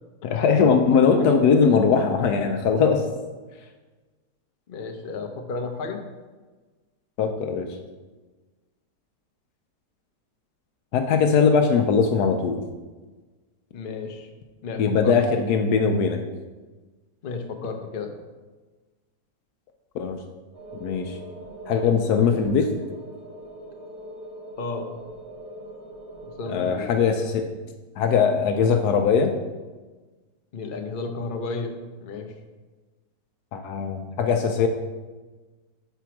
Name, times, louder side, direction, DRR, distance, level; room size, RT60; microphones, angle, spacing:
voice 1, 0.2-3.1 7.2-7.7 10.9-12.6 14.8-16.2 19.9-20.2 20.8-21.2 21.7-22.7 26.5-27.4 28.0-29.3 33.5-34.7, left 6 dB, 75° left, 5 dB, 1.1 m, -20 dB
voice 2, 4.7-6.0 13.7-14.3 14.6-15.1 17.2-18.1 24.6-24.9 26.3-26.9 30.5-31.7 32.0-32.3, left 4 dB, 55° left, 4 dB, 0.5 m, -33 dB
sound 1, 20.5-27.3, right 1 dB, 75° right, 2.1 m, -41 dB
5.0 x 4.5 x 5.8 m, 1.3 s
omnidirectional pair, 1.8 m